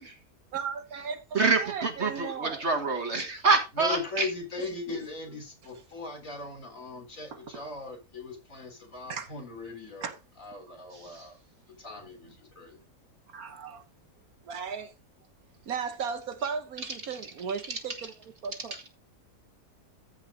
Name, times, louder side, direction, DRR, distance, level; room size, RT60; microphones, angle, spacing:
voice 1, 0.5-2.7 4.6-4.7 4.9-5.0 9.1-9.3 10.0-10.2 13.3-13.8 14.4-14.9 15.7-18.1 18.4-18.9, right 6 dB, 65° right, 1.4 m, -36 dB
voice 2, 1.3-4.3 11.0-11.2, right 4 dB, 45° right, 1.7 m, -26 dB
voice 3, 3.7-11.4 11.8-12.8, left 3 dB, 55° left, 4.2 m, -39 dB
14.0 x 5.3 x 3.8 m
omnidirectional pair, 1.7 m